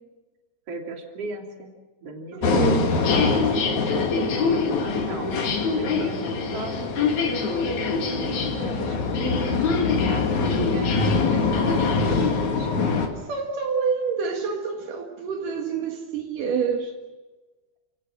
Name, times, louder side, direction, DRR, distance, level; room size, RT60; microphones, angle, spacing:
voice 1, 0.7-1.7 2.0-2.7 4.1-12.9, right 3 dB, 50° right, 3.9 m, -36 dB
voice 2, 2.3-2.9 13.3-16.9, right 6 dB, 80° right, 3.4 m, -27 dB
sound 1, 2.4-13.1, left 4 dB, 65° left, 3.6 m, -23 dB
29.5 x 18.5 x 7.5 m
omnidirectional pair, 3.8 m